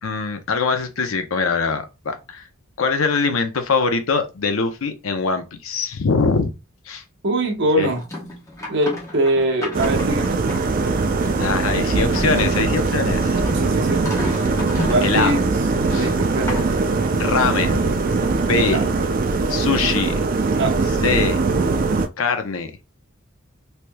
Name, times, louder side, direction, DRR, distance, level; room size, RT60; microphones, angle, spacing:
voice 1, 0.0-2.5 2.8-6.5 6.9-7.0 7.8-7.9 11.4-13.4 15.0-15.4 15.9-16.1 17.1-17.8 18.4-18.8 19.5-20.2 21.0-21.4 22.2-22.7, left 4 dB, 80° left, 0.6 m, -22 dB
voice 2, 7.2-8.0 8.7-10.4 13.5-14.4 14.8-16.6 18.7-18.8 20.5-20.8, right 1 dB, 55° right, 0.9 m, -23 dB
sound 1, 7.9-10.9 11.9-15.4 16.0-16.9, left 1 dB, 15° left, 0.8 m, -32 dB
sound 2, 9.7-22.1, right 3 dB, 40° right, 0.4 m, -21 dB
3.2 x 2.9 x 2.2 m
head